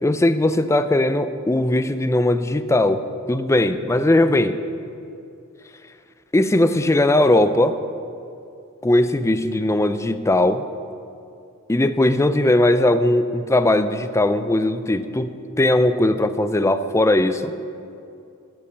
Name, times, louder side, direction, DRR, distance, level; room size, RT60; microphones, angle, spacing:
voice 1, 0.0-4.6 6.3-7.8 8.8-10.6 11.7-17.5, left 1 dB, 15° left, 11 dB, 0.4 m, -19 dB
12.5 x 6.9 x 7.2 m, 2.5 s
head